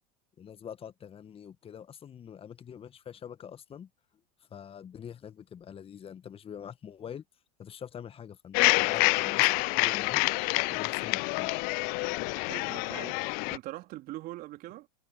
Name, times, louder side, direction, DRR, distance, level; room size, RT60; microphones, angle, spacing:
voice 1, 0.4-3.9 4.5-7.2 7.6-11.5, left 8 dB, 30° left, 1.7 m, -45 dB
sound 1, 8.5-13.6, left 29 dB, 50° left, 0.5 m, -27 dB
voice 2, 12.5-13.2 13.5-14.9, right 17 dB, 45° right, 3.8 m, -42 dB
hypercardioid pair, 90°, 20 cm